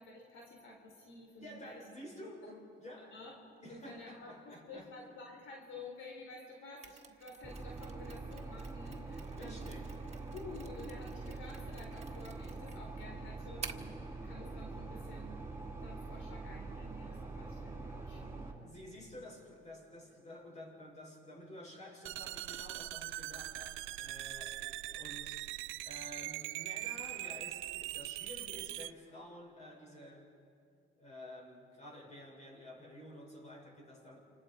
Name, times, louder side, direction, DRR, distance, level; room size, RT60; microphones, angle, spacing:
voice 1, 0.0-1.8 2.4-2.5 3.1-3.4 3.7-9.7 10.3-15.4 15.8-18.5, left 2 dB, 80° left, 1 dB, 3.8 m, -51 dB
voice 2, 1.4-3.2 3.6-4.9 9.3-9.9 18.6-25.5 25.9-30.3 31.0-34.2, left 1 dB, 35° left, 0 dB, 6.9 m, -51 dB
Mechanisms, 6.8-14.0, right 5 dB, 35° right, 1.7 m, -52 dB
sound 1, 7.4-18.5, right 3 dB, 15° right, 6.4 m, -44 dB
sound 2, 22.1-28.9, right 16 dB, 90° right, 0.5 m, -42 dB
30.0 x 27.0 x 5.0 m, 2.5 s
cardioid pair, 90°, 20 cm